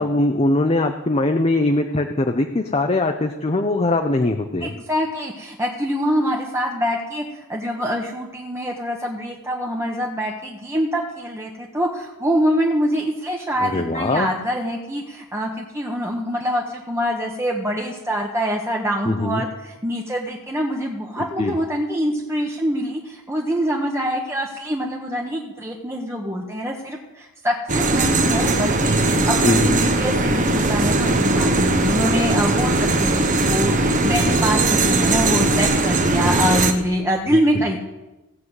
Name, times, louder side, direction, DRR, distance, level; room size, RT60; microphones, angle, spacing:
voice 1, 0.0-4.7 13.6-14.3 19.0-19.4 21.2-21.5 29.1-29.8 37.3-37.4, left 2 dB, 30° left, 5 dB, 0.7 m, -21 dB
voice 2, 4.6-37.8, equal, 10° right, -1 dB, 1.2 m, -25 dB
sound 1, 27.7-36.7, right 2 dB, 35° right, 1.0 m, -19 dB
17.0 x 5.7 x 8.0 m, 1.0 s
head